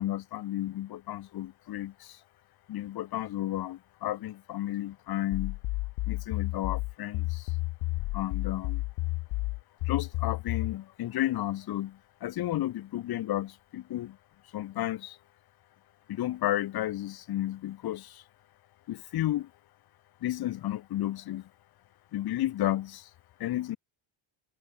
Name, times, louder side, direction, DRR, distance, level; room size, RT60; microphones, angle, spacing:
voice 1, 0.0-2.2 2.7-5.6 6.1-7.5 8.1-8.8 9.9-14.2 14.5-15.2 16.1-18.2 18.9-19.5 20.2-21.5 22.1-23.1 23.4-23.8, left 14 dB, 45° left, 2.9 m, -32 dB
sound 1, 5.3-10.8, left 23 dB, 80° left, 2.0 m, -31 dB
cardioid pair, 175°, 49 cm